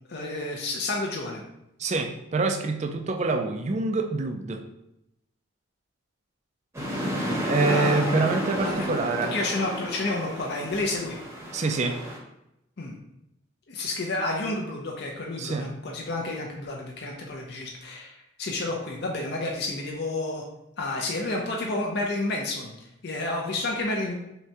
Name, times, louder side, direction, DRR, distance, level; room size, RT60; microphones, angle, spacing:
voice 1, 0.1-1.4 7.7-8.2 8.6-8.9 9.3-11.2 12.8-12.9 13.7-20.4 20.8-22.7 23.0-24.1, left 2 dB, 55° left, 0 dB, 0.5 m, -30 dB
voice 2, 1.8-4.6 7.5-9.4 11.5-12.0 15.4-15.7, right 3 dB, 35° right, 5 dB, 0.3 m, -26 dB
sound 1, 6.7-12.2, equal, 15° right, 0.8 m, -31 dB
5.6 x 2.2 x 2.8 m, 0.85 s
head